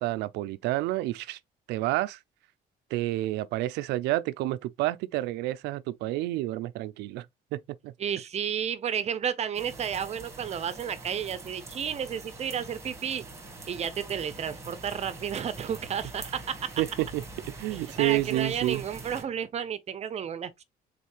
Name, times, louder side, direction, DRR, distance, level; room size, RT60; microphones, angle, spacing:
voice 1, 0.0-1.4 1.7-2.2 2.9-7.3 7.5-7.9 16.8-17.2 17.6-18.8, right 17 dB, 85° right, 0.4 m, -29 dB
voice 2, 8.0-13.2 13.7-16.7 17.7-20.6, right 8 dB, 40° right, 0.6 m, -32 dB
sound 1, 9.5-19.2, right 2 dB, 15° right, 1.4 m, -44 dB
4.1 x 3.1 x 2.9 m
cardioid pair, 110°, 17 cm